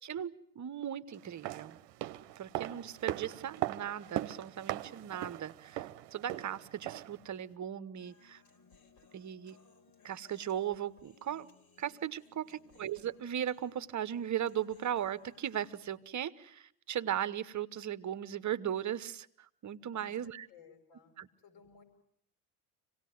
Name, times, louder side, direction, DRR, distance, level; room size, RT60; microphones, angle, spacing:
voice 1, 0.5-1.8 2.4-8.4 9.1-9.6 10.0-11.5 11.8-20.5 21.2-21.3, right 10 dB, 35° right, 14 dB, 1.1 m, -37 dB
sound 1, 1.2-7.2 7.5-7.6, right 14 dB, 60° right, 1.0 m, -39 dB
Human voice, 8.0-16.0, left 4 dB, 45° left, 4.2 m, -64 dB
voice 2, 20.5-21.2 21.4-21.8, left 5 dB, 65° left, 6 dB, 6.8 m, -58 dB
26.0 x 18.0 x 9.5 m, 0.71 s
hypercardioid pair, 70°, 48 cm